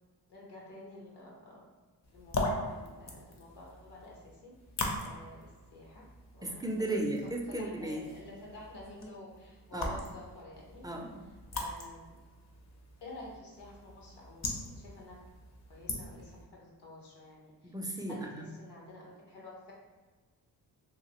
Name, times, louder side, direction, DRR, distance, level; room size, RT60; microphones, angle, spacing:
voice 1, 0.3-1.7 2.1-4.5 5.0-6.0 6.3-6.9 7.2-7.3 7.6-10.8 11.5-12.1 13.0-15.2 15.7-17.7 18.1-19.7, left 2 dB, 75° left, -3 dB, 1.1 m, -50 dB
sound 1, 2.0-16.4, left 2 dB, 40° left, 0.6 m, -41 dB
voice 2, 6.4-8.1 9.7-10.0 10.8-11.2 17.6-18.4, right 1 dB, 10° right, 0 dB, 0.3 m, -35 dB
2.8 x 2.6 x 2.9 m, 1.3 s
cardioid pair, 100°, 41 cm